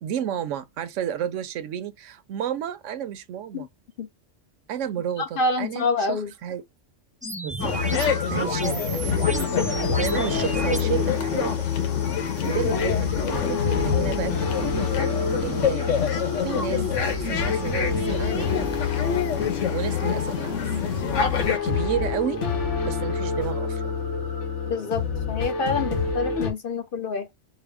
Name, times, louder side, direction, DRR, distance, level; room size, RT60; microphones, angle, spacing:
voice 1, 0.0-3.7 4.7-6.6 7.4-9.6 9.9-11.6 12.4-14.9 15.4-15.9 16.4-16.8 17.2-18.5 19.7-20.6 21.6-22.4 22.8-23.9, right 9 dB, 80° right, 1.0 m, -31 dB
voice 2, 5.2-6.3 24.7-27.4, left 3 dB, 55° left, 0.7 m, -27 dB
sound 1, 7.2-10.8, right 1 dB, 10° right, 0.4 m, -32 dB
sound 2, 7.6-21.6, left 7 dB, 90° left, 1.3 m, -27 dB
sound 3, 7.6-26.5, left 5 dB, 75° left, 1.4 m, -28 dB
4.6 x 2.1 x 3.4 m
omnidirectional pair, 1.3 m